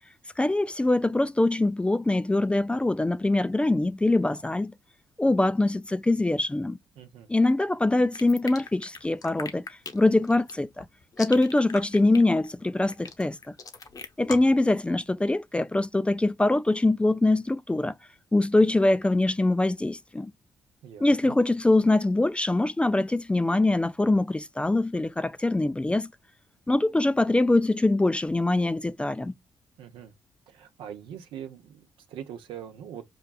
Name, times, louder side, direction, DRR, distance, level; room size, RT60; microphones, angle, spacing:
voice 1, 0.4-4.7 5.2-6.8 7.3-9.6 9.9-10.9 11.2-13.4 14.2-17.9 18.3-20.3 21.0-26.1 26.7-29.3, left 2 dB, 15° left, 0.4 m, -23 dB
voice 2, 7.0-7.3 20.8-21.3 29.8-30.1 30.5-33.0, right 9 dB, 80° right, 0.7 m, -42 dB
sound 1, 8.2-14.6, left 4 dB, 45° left, 0.8 m, -39 dB
5.2 x 2.4 x 2.3 m
supercardioid pair, 55°, 9 cm